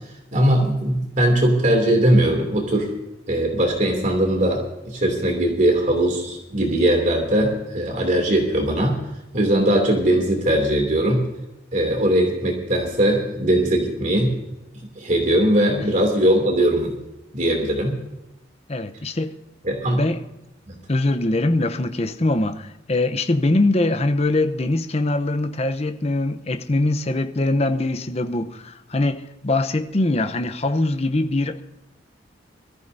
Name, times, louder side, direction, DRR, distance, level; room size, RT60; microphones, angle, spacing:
voice 1, 0.3-2.9 3.3-9.0 9.3-11.2 11.7-14.4 14.9-16.9 17.3-17.9 19.6-20.0 20.7-20.8, right 1 dB, 45° right, 2.8 m, -20 dB
voice 2, 18.7-19.3 19.9-20.2 20.9-31.6, left 2 dB, 35° left, 0.8 m, -22 dB
23.0 x 14.5 x 2.7 m
head